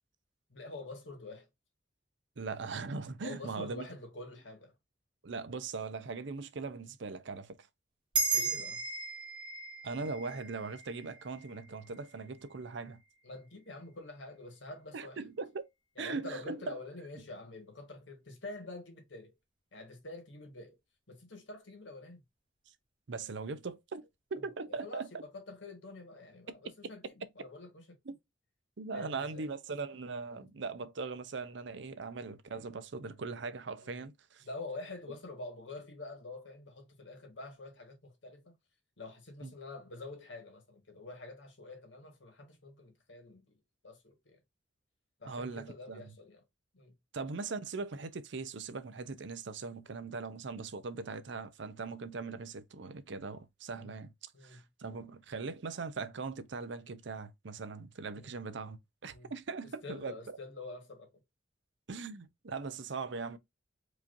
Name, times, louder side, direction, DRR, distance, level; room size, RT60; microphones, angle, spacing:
voice 1, 0.5-1.5 3.2-4.7 8.2-8.8 13.2-15.2 16.0-19.3 19.7-20.8 21.1-22.2 24.4-28.0 28.9-29.5 30.3-30.5 33.8-34.0 34.4-38.6 39.0-43.6 43.8-44.4 45.2-46.4 46.7-46.9 53.7-54.0 54.3-54.6 58.1-58.4 59.1-59.3 59.8-61.1, left 2 dB, 70° left, 1.7 m, -47 dB
voice 2, 2.4-3.9 5.2-7.7 9.8-13.0 14.9-15.7 16.0-16.8 23.1-25.1 26.5-26.6 28.1-28.2 28.8-34.5 39.4-39.5 45.3-46.0 47.1-60.1 61.9-63.4, right 4 dB, 70° right, 0.6 m, -40 dB
sound 1, 8.1-12.9, right 4 dB, 25° right, 1.4 m, -36 dB
4.8 x 2.8 x 2.5 m
head